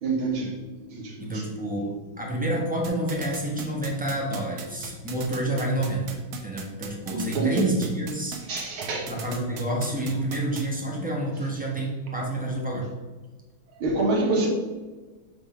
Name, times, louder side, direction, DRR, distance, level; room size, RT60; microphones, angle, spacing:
voice 1, 0.0-0.5 0.8-1.4 7.1-7.7 8.5-9.1 13.8-14.5, right 2 dB, 80° right, 0 dB, 2.2 m, -26 dB
voice 2, 1.2-8.4 9.1-12.9, right 1 dB, 5° right, -3 dB, 0.9 m, -29 dB
sound 1, 2.8-10.6, right 6 dB, 60° right, 1.2 m, -38 dB
6.6 x 3.6 x 5.8 m, 1.3 s
omnidirectional pair, 2.2 m